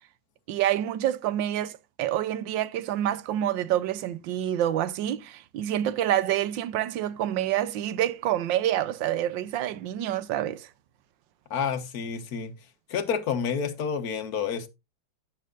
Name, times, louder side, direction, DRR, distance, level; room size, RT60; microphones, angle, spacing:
voice 1, 0.5-10.7, right 12 dB, 80° right, 1.4 m, -27 dB
voice 2, 11.5-12.5 12.9-14.7, left 6 dB, 55° left, 1.6 m, -29 dB
11.5 x 9.0 x 2.5 m
omnidirectional pair, 2.0 m